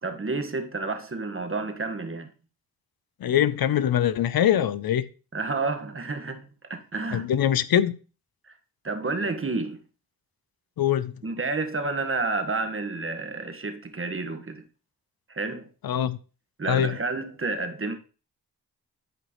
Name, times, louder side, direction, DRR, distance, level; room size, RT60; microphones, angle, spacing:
voice 1, 0.0-2.3 5.3-7.3 8.8-9.8 11.2-14.6 15.3-15.7 16.6-18.0, right 3 dB, 35° right, 1.5 m, -30 dB
voice 2, 3.2-5.0 7.1-8.0 10.8-11.1 15.8-16.2 16.7-17.0, left 10 dB, 65° left, 0.6 m, -23 dB
12.0 x 5.0 x 3.1 m
cardioid pair, 50°, 39 cm